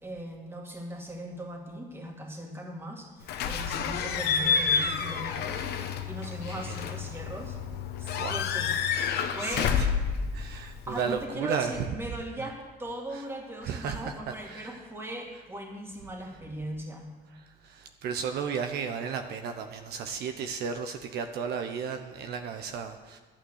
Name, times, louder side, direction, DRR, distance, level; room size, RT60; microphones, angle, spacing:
voice 1, 0.0-5.7 6.1-7.6 8.0-9.1 9.3-9.7 10.9-17.1, right 1 dB, 15° right, 1 dB, 2.2 m, -39 dB
Slam / Squeak / Alarm, 3.3-11.2, left 6 dB, 75° left, 1.0 m, -29 dB
voice 2, 6.2-6.9 8.1-8.5 8.9-9.9 10.3-11.8 13.1-13.2 13.6-14.0 14.4-14.8 17.6-23.2, right 6 dB, 75° right, 7 dB, 0.8 m, -34 dB
11.0 x 8.9 x 6.4 m, 1.3 s
cardioid pair, 110°, 17 cm